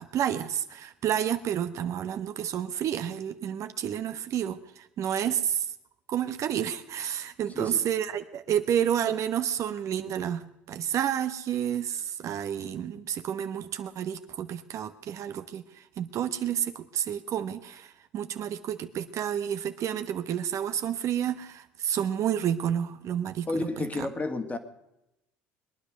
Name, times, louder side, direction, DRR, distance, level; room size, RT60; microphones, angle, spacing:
voice 1, 0.0-5.7 6.1-24.1, right 9 dB, 50° right, 8 dB, 1.1 m, -30 dB
voice 2, 7.5-7.9 23.5-24.6, left 2 dB, 25° left, 7 dB, 2.0 m, -31 dB
22.0 x 10.0 x 6.4 m, 0.90 s
hypercardioid pair, 75°, 7 cm